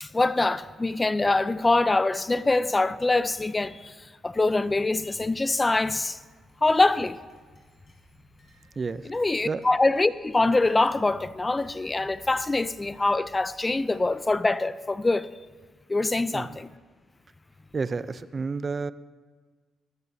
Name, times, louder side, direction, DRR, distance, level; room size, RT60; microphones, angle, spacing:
voice 1, 0.0-6.2 6.6-7.2 9.0-15.3 15.9-16.7, left 2 dB, 20° left, 0.4 m, -24 dB
sound 1, 4.3-14.2, right 1 dB, 40° left, 4.8 m, -59 dB
voice 2, 8.8-9.1 9.4-9.7 16.3-16.6 17.7-18.9, right 4 dB, 35° right, 0.5 m, -30 dB
20.5 x 13.5 x 2.7 m
cardioid pair, 90°, 0 cm